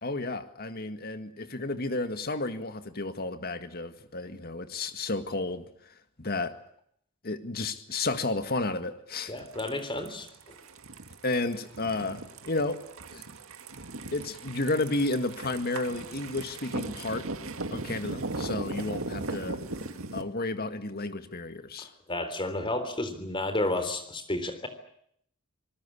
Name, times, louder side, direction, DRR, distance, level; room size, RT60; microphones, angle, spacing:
voice 1, 0.0-6.5 7.2-9.3 11.2-12.8 13.1-13.2 14.1-17.3 17.7-19.6 20.1-21.9, left 2 dB, 45° left, 9 dB, 1.9 m, -32 dB
voice 2, 9.3-10.5 22.1-24.7, left 2 dB, 25° left, 9 dB, 3.5 m, -31 dB
sound 1, 9.4-20.2, right 2 dB, 65° right, 2.0 m, -38 dB
26.5 x 19.5 x 8.6 m, 0.69 s
head